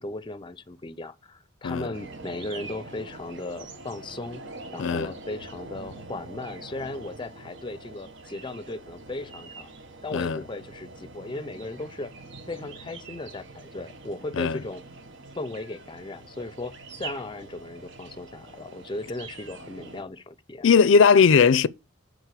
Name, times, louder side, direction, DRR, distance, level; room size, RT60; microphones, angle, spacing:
voice 1, 0.0-4.5 4.7-9.7 10.0-12.1 12.5-14.8 15.4-20.7, left 2 dB, 25° left, 0.5 m, -36 dB
sound 1, 1.9-20.0, right 3 dB, 70° right, 1.3 m, -44 dB
voice 2, 20.6-21.7, left 5 dB, 80° left, 0.5 m, -18 dB
9.4 x 3.9 x 6.7 m
head